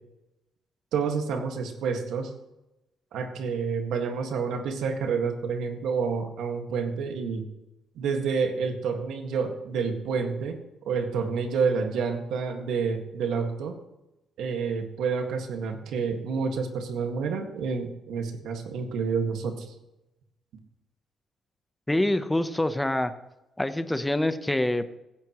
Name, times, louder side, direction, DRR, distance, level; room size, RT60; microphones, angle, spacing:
voice 1, 0.9-2.3 3.1-7.5 8.0-10.6 10.8-13.8 14.4-19.7, right 5 dB, 80° right, 5 dB, 1.8 m, -29 dB
voice 2, 21.9-23.1 23.6-25.0, left 1 dB, 10° left, 10 dB, 0.9 m, -26 dB
16.0 x 13.5 x 3.1 m, 0.93 s
cardioid pair, 90°, 0 cm